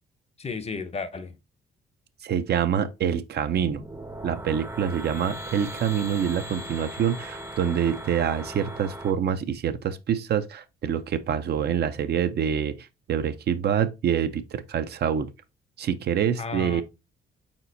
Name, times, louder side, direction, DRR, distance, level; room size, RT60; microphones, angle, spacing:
voice 1, 0.4-1.3 16.4-16.8, left 4 dB, 30° left, 0.6 m, -33 dB
voice 2, 2.2-3.8 4.2-15.3 15.8-16.8, right 8 dB, 55° right, 0.5 m, -26 dB
sound 1, 3.4-9.1, right 1 dB, 15° right, 0.6 m, -38 dB
4.3 x 4.1 x 2.6 m
cardioid pair, 90°, 20 cm